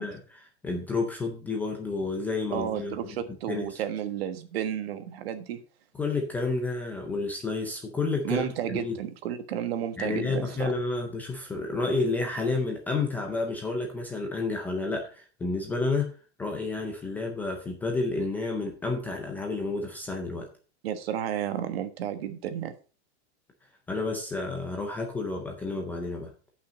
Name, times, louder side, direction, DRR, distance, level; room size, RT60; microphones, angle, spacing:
voice 1, 0.0-2.9 3.5-3.8 6.0-9.0 10.0-16.1 16.4-20.5 23.9-26.3, left 3 dB, 5° left, 2 dB, 0.4 m, -30 dB
voice 2, 2.5-5.6 8.2-10.7 20.8-22.7, right 10 dB, 65° right, 9 dB, 1.5 m, -32 dB
10.5 x 5.8 x 5.1 m, 0.37 s
supercardioid pair, 175°, 33 cm